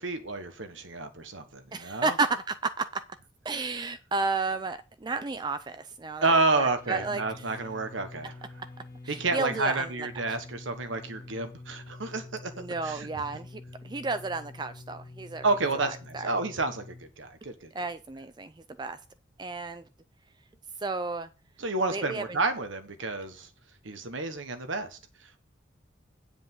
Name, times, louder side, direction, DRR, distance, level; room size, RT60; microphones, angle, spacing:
voice 1, 0.0-2.1 6.2-8.3 9.1-12.5 12.8-13.1 15.4-17.7 21.6-23.5 23.8-25.0, right 3 dB, 90° right, 1.3 m, -30 dB
voice 2, 1.7-3.0 3.4-7.5 9.0-10.1 12.6-15.4 15.7-16.3 17.7-19.0 19.4-19.8 20.8-21.3 21.9-22.4, right 3 dB, 20° right, 0.4 m, -32 dB
sound 1, 6.8-17.0, left 2 dB, 20° left, 2.8 m, -47 dB
9.9 x 5.1 x 5.5 m
head